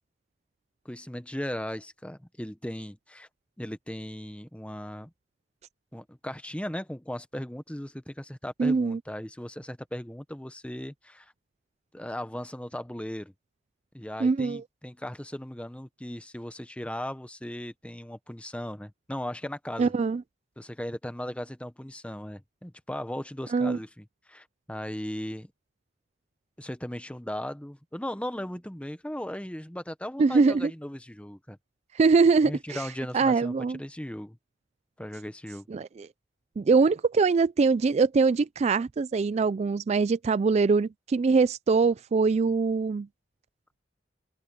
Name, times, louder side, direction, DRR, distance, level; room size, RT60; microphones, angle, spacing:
voice 1, 0.8-3.3 3.6-5.1 5.9-11.3 11.9-13.3 13.9-19.9 20.6-25.5 26.6-31.6 32.4-34.4 35.0-35.7, left 1 dB, 5° left, 0.9 m, -37 dB
voice 2, 8.6-9.0 14.2-14.6 19.8-20.2 23.5-23.8 30.2-30.7 31.9-32.8 33.1-33.8 35.7-36.1 36.6-43.1, right 4 dB, 35° right, 0.3 m, -23 dB
open air
head